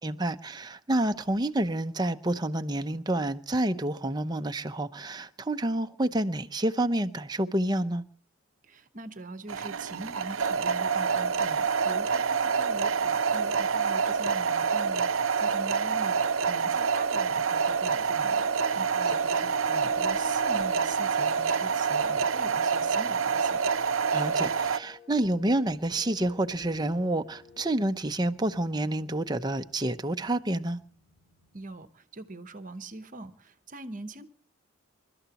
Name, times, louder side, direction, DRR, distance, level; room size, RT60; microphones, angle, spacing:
voice 1, 0.0-8.0 24.1-30.8, right 1 dB, 20° right, 0.7 m, -28 dB
voice 2, 8.6-23.6 31.5-34.3, right 2 dB, 35° right, 1.0 m, -43 dB
sound 1, 9.5-24.8, right 6 dB, 70° right, 0.7 m, -27 dB
sound 2, 18.5-27.9, left 6 dB, 50° left, 1.9 m, -51 dB
sound 3, 26.4-31.9, left 1 dB, 75° left, 7.6 m, -63 dB
28.5 x 13.0 x 3.0 m
head